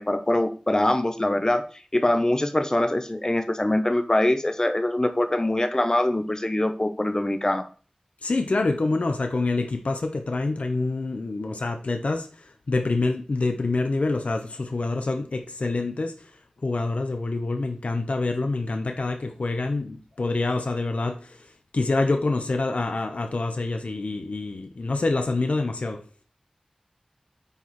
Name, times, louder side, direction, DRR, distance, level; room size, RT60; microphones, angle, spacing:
voice 1, 0.0-1.6 1.9-7.7, left 1 dB, 30° left, 1.1 m, -23 dB
voice 2, 8.2-12.3 12.7-16.1 16.6-21.4 21.7-26.0, left 3 dB, 85° left, 1.0 m, -26 dB
8.9 x 4.7 x 4.4 m
wide cardioid pair, 50°, 2 cm